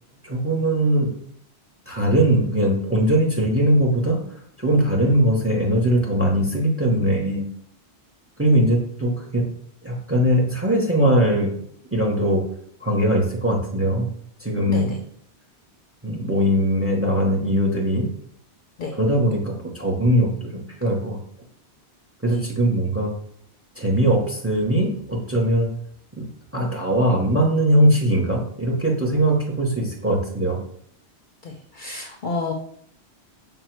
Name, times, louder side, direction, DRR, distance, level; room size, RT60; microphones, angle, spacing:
voice 1, 0.2-1.1 1.9-4.2 4.6-7.4 8.4-9.5 9.8-11.5 11.9-12.4 12.8-14.1 14.4-15.0 16.0-18.1 18.9-21.2 22.2-23.1 23.8-25.7 26.2-30.6, right 1 dB, 15° right, -1 dB, 0.7 m, -20 dB
voice 2, 31.4-32.5, left 4 dB, 60° left, 2 dB, 0.6 m, -29 dB
5.3 x 2.2 x 4.4 m, 0.64 s
omnidirectional pair, 1.1 m